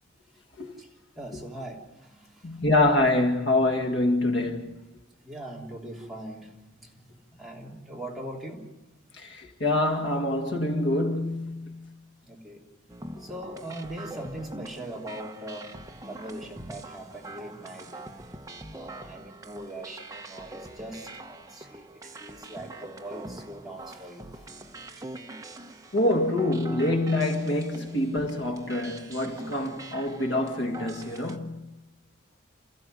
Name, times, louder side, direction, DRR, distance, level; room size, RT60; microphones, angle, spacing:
voice 1, 0.8-2.6 5.2-8.7 12.2-12.6 13.2-18.4 18.7-24.5 25.0-25.1, right 1 dB, ahead, 3.4 m, -41 dB
voice 2, 2.4-4.8 9.1-11.9 25.9-31.7, left 1 dB, 65° left, 2.1 m, -26 dB
sound 1, 12.9-31.4, right 2 dB, 15° right, 1.0 m, -43 dB
28.5 x 15.0 x 7.8 m
head